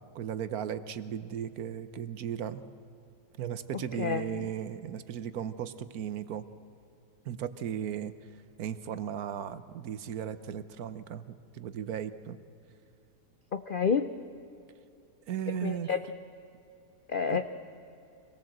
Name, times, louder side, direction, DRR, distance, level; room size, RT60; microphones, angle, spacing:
voice 1, 0.0-2.6 3.4-6.5 7.2-8.1 8.6-12.4 15.3-15.9 17.3-17.4, right 9 dB, 70° right, 13 dB, 1.2 m, -36 dB
voice 2, 4.0-4.5 13.5-14.1 15.5-16.1 17.1-17.4, left 6 dB, 65° left, 10 dB, 0.5 m, -29 dB
24.5 x 18.5 x 7.8 m, 2.7 s
omnidirectional pair, 1.7 m